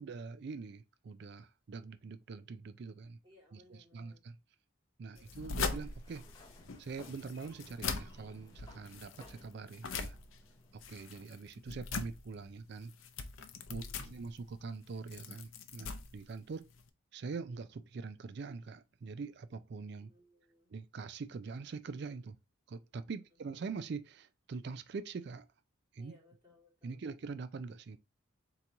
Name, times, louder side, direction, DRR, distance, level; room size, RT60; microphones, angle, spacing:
voice 1, 0.0-3.2 3.5-4.4 5.0-6.2 6.8-10.2 10.7-12.9 13.7-16.7 17.1-20.1 20.7-22.4 22.7-25.5 25.9-26.2 26.8-28.0, right 4 dB, 55° right, 0.4 m, -44 dB
voice 2, 3.2-4.2 5.1-5.4 13.7-14.2 20.0-20.7 23.1-23.4 26.0-27.0, left 2 dB, 20° right, 2.1 m, -64 dB
sound 1, 5.1-16.9, left 5 dB, 80° left, 0.6 m, -42 dB
Sliding door, 5.6-11.2, left 2 dB, 20° left, 0.7 m, -60 dB
3.9 x 2.9 x 4.6 m
head